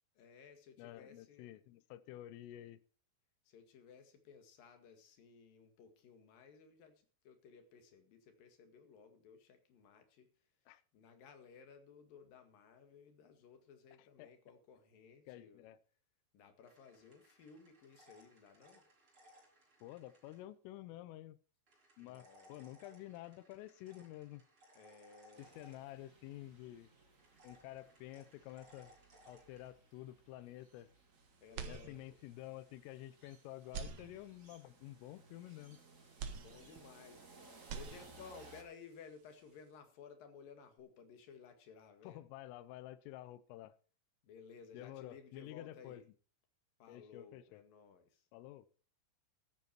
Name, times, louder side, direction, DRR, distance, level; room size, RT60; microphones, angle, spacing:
voice 1, 0.2-1.5 3.4-10.3 10.6-15.7 16.3-18.8 22.0-22.8 24.7-25.5 31.4-32.2 36.3-37.3 37.7-42.3 44.2-46.0 46.8-48.3, left 6 dB, 55° left, 3.2 m, -58 dB
voice 2, 0.8-2.8 10.7-10.8 14.2-14.3 15.3-15.8 19.8-21.4 22.0-24.4 25.4-26.9 27.4-29.0 29.3-30.9 31.7-35.8 42.0-43.8 44.7-46.0 46.9-47.6 48.3-48.7, left 14 dB, 90° left, 3.4 m, -50 dB
sound 1, 16.6-20.4 21.7-26.3 27.2-29.7, equal, 30° right, 4.6 m, -65 dB
sound 2, 25.3-38.6, right 3 dB, 50° right, 0.9 m, -62 dB
sound 3, 31.5-32.4 32.9-33.0 33.6-34.7 36.2-37.3 37.5-38.5, right 6 dB, 90° right, 1.6 m, -46 dB
14.0 x 11.0 x 4.4 m
omnidirectional pair, 5.7 m